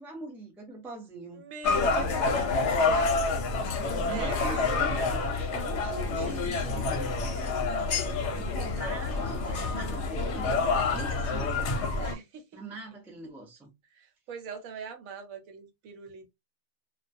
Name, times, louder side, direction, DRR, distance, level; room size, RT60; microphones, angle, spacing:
voice 1, 0.0-1.4 3.8-7.1 8.3-11.7 12.5-13.7, right 2 dB, 5° right, 0.4 m, -43 dB
voice 2, 1.3-3.3 4.1-4.9 12.0-12.4 13.9-16.3, right 5 dB, 80° right, 1.1 m, -42 dB
sound 1, 1.6-12.1, left 3 dB, 65° left, 0.8 m, -28 dB
2.3 x 2.2 x 2.5 m
omnidirectional pair, 1.4 m